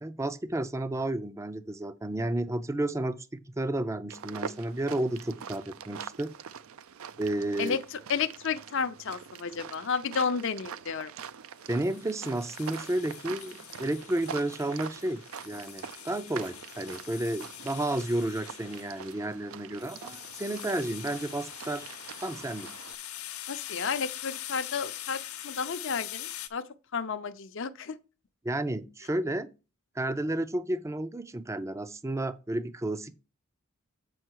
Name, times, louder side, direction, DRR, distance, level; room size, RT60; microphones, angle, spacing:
voice 1, 0.0-6.3 7.2-7.8 11.7-21.9 22.2-22.7 28.4-29.5 30.0-33.1, right 1 dB, 15° right, 0.4 m, -32 dB
sound 1, 4.1-22.9, right 7 dB, 75° right, 0.4 m, -44 dB
voice 2, 7.6-11.1 23.5-26.6 26.9-28.0, left 6 dB, 60° left, 0.6 m, -32 dB
sound 2, 11.7-26.5, left 12 dB, 90° left, 0.8 m, -43 dB
7.8 x 5.5 x 4.6 m
head